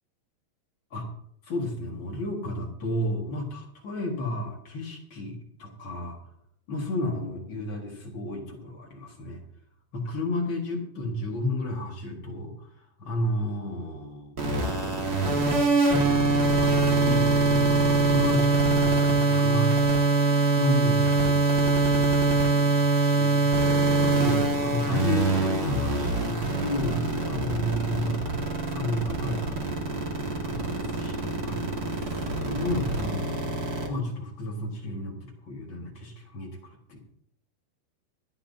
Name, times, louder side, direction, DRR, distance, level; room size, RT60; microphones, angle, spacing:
voice 1, 1.4-6.2 6.7-9.4 9.9-14.4 16.6-16.7 17.0-18.7 19.0-19.7 20.5-28.4 28.6-37.0, left 1 dB, 55° left, 0 dB, 1.4 m, -32 dB
sound 1, 14.4-33.9, right 3 dB, 70° right, 0.8 m, -23 dB
25.5 x 10.0 x 2.8 m, 0.71 s
omnidirectional pair, 5.2 m